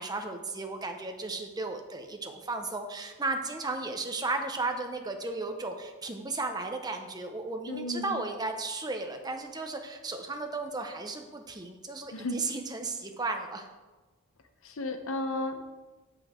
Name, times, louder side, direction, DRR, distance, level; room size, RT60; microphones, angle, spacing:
voice 1, 0.0-13.7, right 3 dB, 20° right, 5 dB, 0.8 m, -35 dB
voice 2, 7.7-8.2 12.1-12.4 14.6-15.7, left 2 dB, 65° left, 7 dB, 0.8 m, -34 dB
8.0 x 7.9 x 4.4 m, 1.2 s
head